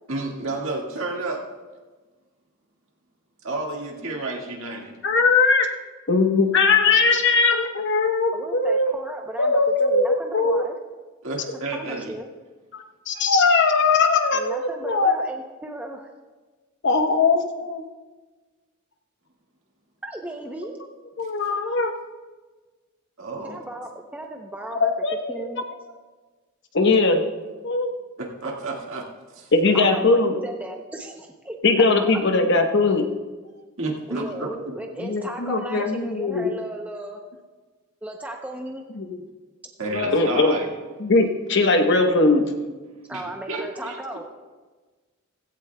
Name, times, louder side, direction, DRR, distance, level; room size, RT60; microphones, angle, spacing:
voice 1, 0.1-1.4 3.4-4.9 11.2-12.1 23.2-23.6 28.2-29.0 29.3-29.5 33.8-34.5 39.8-40.7 43.1-44.0, right 2 dB, 65° right, -1 dB, 1.8 m, -30 dB
voice 2, 5.0-5.7 6.1-8.9 9.4-10.6 12.7-15.1 16.8-17.8 21.2-21.9 24.8-25.4 26.7-27.2 27.6-27.9 29.5-30.3 31.6-33.1 35.0-36.5 39.0-39.2 39.9-40.6 41.0-42.5, left 3 dB, 55° left, 5 dB, 1.0 m, -20 dB
voice 3, 8.3-10.8 11.7-12.3 14.3-16.1 20.0-20.7 23.4-24.9 25.3-25.6 29.7-32.2 34.1-37.2 38.0-38.8 43.1-44.2, right 1 dB, 5° right, 1 dB, 0.6 m, -35 dB
16.0 x 15.5 x 2.3 m, 1.3 s
head